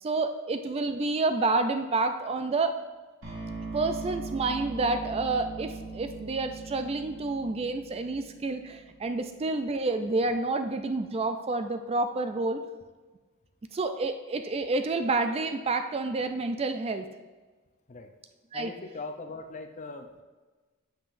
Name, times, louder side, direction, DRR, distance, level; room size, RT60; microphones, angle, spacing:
voice 1, 0.0-2.8 3.7-12.6 13.7-17.1 18.5-18.7, right 3 dB, 30° right, 8 dB, 0.3 m, -29 dB
sound 1, 3.2-9.2, right 3 dB, 65° right, 2.5 m, -40 dB
voice 2, 18.5-20.2, left 3 dB, 35° left, 6 dB, 0.6 m, -40 dB
8.8 x 7.4 x 2.6 m, 1.3 s
head